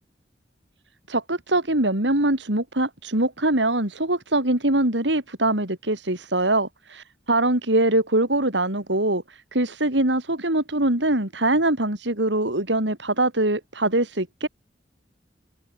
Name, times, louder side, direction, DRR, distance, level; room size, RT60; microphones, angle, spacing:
voice 1, 1.1-9.2 9.5-14.5, right 1 dB, 85° right, 4.7 m, -23 dB
head